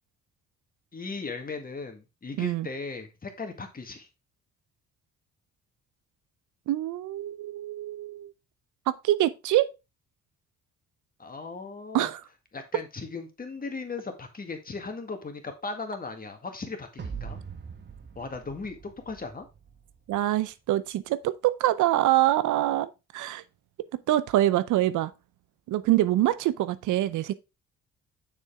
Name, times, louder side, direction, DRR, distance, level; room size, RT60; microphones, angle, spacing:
voice 1, 0.9-4.1 11.2-12.1 12.5-17.4 18.2-19.5, left 4 dB, 30° left, 1.9 m, -37 dB
voice 2, 6.7-8.3 8.9-9.7 11.9-12.2 20.1-23.4 23.9-25.1 25.7-27.3, right 14 dB, 80° right, 0.6 m, -25 dB
sound 1, 17.0-20.3, right 6 dB, 35° right, 1.4 m, -42 dB
6.9 x 6.5 x 3.5 m
cardioid pair, 90°, 30 cm